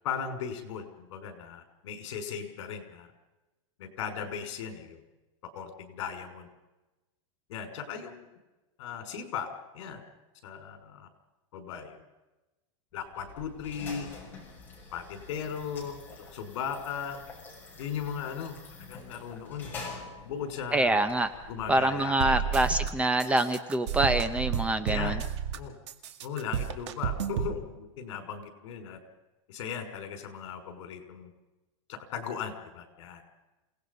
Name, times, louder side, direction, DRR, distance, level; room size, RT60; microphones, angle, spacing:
voice 1, 0.0-3.1 3.8-5.0 5.5-6.5 7.5-8.3 8.8-9.5 9.7-10.0 10.4-11.1 11.5-12.0 12.9-14.1 14.9-16.0 16.3-17.2 17.8-19.7 20.2-21.0 21.5-22.8 24.9-25.2 25.5-25.7 26.2-29.0 29.5-31.3 31.9-33.2, left 7 dB, 65° left, 6 dB, 5.4 m, -37 dB
sound 1, 13.0-22.3, left 4 dB, 10° left, 6.7 m, -46 dB
voice 2, 20.7-21.3 21.7-25.2, right 2 dB, 10° right, 11 dB, 0.7 m, -25 dB
sound 2, 22.2-22.9 23.2-25.6 25.9-27.5, right 8 dB, 60° right, 2.0 m, -31 dB
28.0 x 18.5 x 5.4 m, 1.0 s
supercardioid pair, 165°, 16 cm